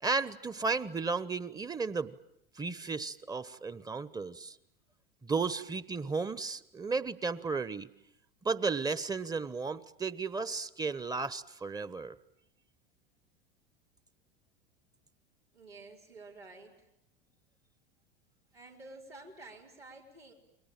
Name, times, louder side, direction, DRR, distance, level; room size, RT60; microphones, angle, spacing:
voice 1, 0.0-2.2 2.6-4.6 5.2-7.9 8.4-12.2, right 4 dB, 15° right, 17 dB, 1.2 m, -34 dB
voice 2, 15.5-16.9 18.5-20.3, right 2 dB, 90° right, -3 dB, 5.0 m, -51 dB
29.5 x 22.5 x 9.0 m, 0.79 s
figure-of-eight pair, 80°, 29 cm